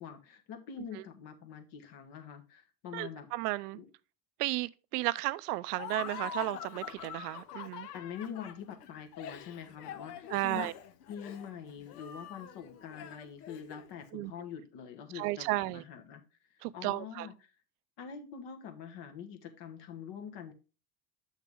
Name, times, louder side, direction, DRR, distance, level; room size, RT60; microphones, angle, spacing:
voice 1, 0.0-3.3 3.7-3.9 7.9-10.7 11.1-16.2 16.5-17.5 18.0-20.5, left 7 dB, 60° left, 1.5 m, -45 dB
voice 2, 2.9-3.8 4.4-7.9 10.3-10.7 14.1-14.3 15.1-15.8 16.6-17.3, right 19 dB, 80° right, 0.6 m, -34 dB
Laughter, 5.7-14.0, left 8 dB, 90° left, 1.0 m, -45 dB
6.7 x 6.3 x 3.5 m
supercardioid pair, 90°, 46 cm